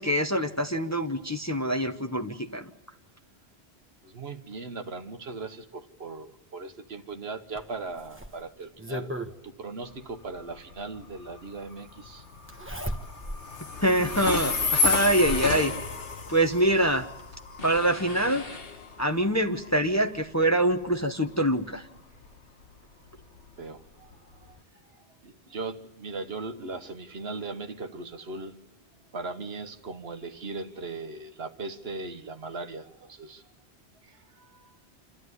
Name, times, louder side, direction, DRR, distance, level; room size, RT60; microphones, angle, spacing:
voice 1, 0.0-2.6 13.8-15.7 16.3-17.1 17.6-18.4 19.0-21.8, right 1 dB, 15° left, 0.9 m, -25 dB
voice 2, 4.0-9.1 9.4-12.2 23.6-24.6 25.2-28.6 29.1-33.4 34.0-34.7, right 3 dB, 65° right, 1.4 m, -39 dB
Zipper (clothing), 7.5-9.3 10.8-10.9 12.5-13.5 13.9-14.0 14.7-15.6 16.8-16.9 17.2-17.3, equal, 10° right, 1.1 m, -36 dB
Train, 9.8-24.6, left 4 dB, 85° left, 1.7 m, -33 dB
sound 1, 17.6-19.4, left 4 dB, 60° left, 1.5 m, -42 dB
28.0 x 13.5 x 9.7 m
omnidirectional pair, 1.1 m